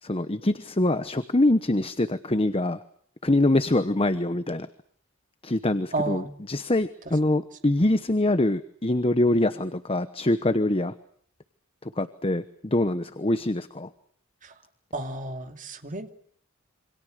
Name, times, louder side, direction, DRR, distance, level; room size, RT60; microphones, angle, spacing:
voice 1, 0.0-2.8 3.2-4.7 5.4-6.2 6.5-10.9 12.0-13.9, left 1 dB, 25° left, 12 dB, 1.0 m, -24 dB
voice 2, 5.9-6.3 14.4-14.6 14.9-16.1, right 2 dB, 40° right, 6 dB, 2.9 m, -32 dB
27.5 x 26.0 x 6.6 m, 0.63 s
head